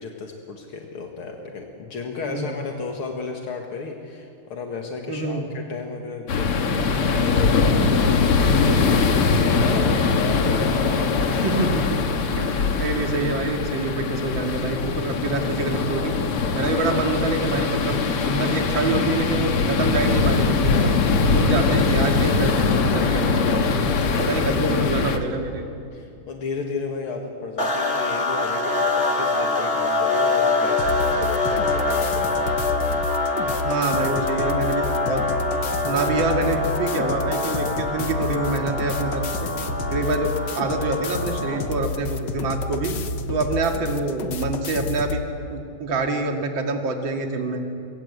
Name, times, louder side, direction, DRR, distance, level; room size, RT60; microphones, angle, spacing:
voice 1, 0.0-11.1 25.9-32.6 40.0-40.2, left 4 dB, 75° left, 2 dB, 2.6 m, -33 dB
voice 2, 2.2-2.5 5.1-5.5 10.4-10.6 11.3-12.0 12.4-16.1 16.5-18.0 18.2-20.9 21.3-23.6 24.2-25.6 33.6-35.2 35.8-39.5 39.9-43.0 43.3-45.2 45.5-47.6, right 3 dB, 60° right, 3 dB, 2.9 m, -26 dB
sound 1, 6.3-25.2, left 4 dB, 90° left, 2.5 m, -21 dB
sound 2, 27.6-41.8, left 2 dB, 30° left, 2.7 m, -25 dB
sound 3, 30.8-45.2, left 4 dB, 55° left, 1.8 m, -30 dB
26.5 x 21.5 x 8.2 m, 2.6 s
omnidirectional pair, 2.4 m